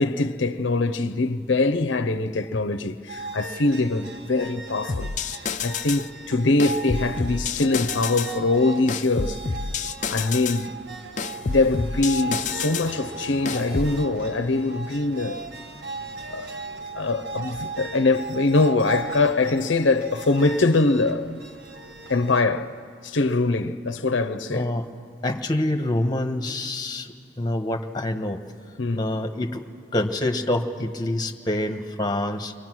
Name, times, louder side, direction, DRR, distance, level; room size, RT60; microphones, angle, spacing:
voice 1, 0.0-5.1 5.6-9.4 10.1-10.7 11.5-15.4 16.3-16.5 16.9-21.4 22.1-22.8 23.0-24.7 28.8-29.0, left 3 dB, 75° left, 0.7 m, -23 dB
sound 1, 3.1-22.4, right 3 dB, 60° right, 1.4 m, -37 dB
sound 2, 4.9-6.1 6.6-8.4 8.9-10.6 11.2-12.9 13.5-14.0, left 5 dB, 40° left, 0.6 m, -29 dB
voice 2, 24.5-24.9 25.2-28.4 28.9-29.6 29.9-32.5, left 1 dB, 20° left, 1.2 m, -26 dB
29.5 x 23.5 x 6.2 m
head